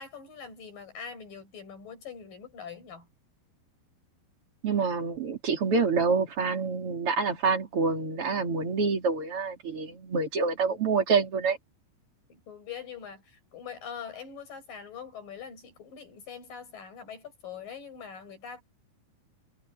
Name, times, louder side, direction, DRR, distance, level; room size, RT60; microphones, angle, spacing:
voice 1, 0.0-3.1 12.3-18.6, left 7 dB, 50° left, 8.3 m, -43 dB
voice 2, 4.6-11.6, right 4 dB, 35° right, 3.5 m, -27 dB
omnidirectional pair, 5.1 m